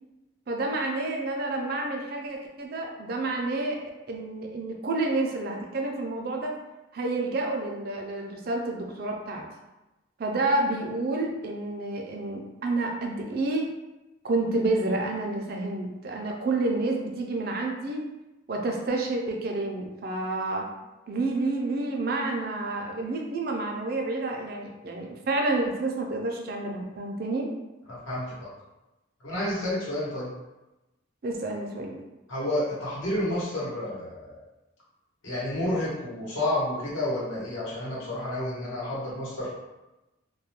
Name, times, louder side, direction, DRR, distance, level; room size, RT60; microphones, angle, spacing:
voice 1, 0.5-3.8 4.1-6.5 6.9-9.4 10.2-13.7 14.2-18.0 18.5-20.7 21.1-27.5 31.2-32.0, right 2 dB, 50° right, 1 dB, 0.4 m, -29 dB
voice 2, 27.9-28.5 29.2-30.3 32.3-34.4 35.2-39.5, left 1 dB, 85° left, -7 dB, 1.0 m, -30 dB
2.3 x 2.1 x 2.8 m, 1.0 s
head